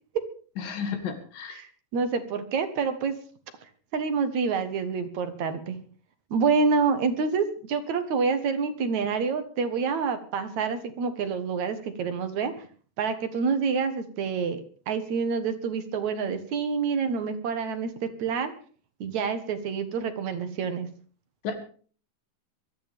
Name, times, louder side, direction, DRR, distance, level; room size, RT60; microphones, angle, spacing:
voice 1, 0.6-1.6 21.4-21.5, left 6 dB, 80° left, 6 dB, 4.0 m, -32 dB
voice 2, 1.5-3.1 3.9-5.8 6.3-12.7 13.0-18.5 19.0-20.9, right 5 dB, 60° right, 9 dB, 2.6 m, -27 dB
22.5 x 13.0 x 3.5 m, 0.42 s
omnidirectional pair, 3.9 m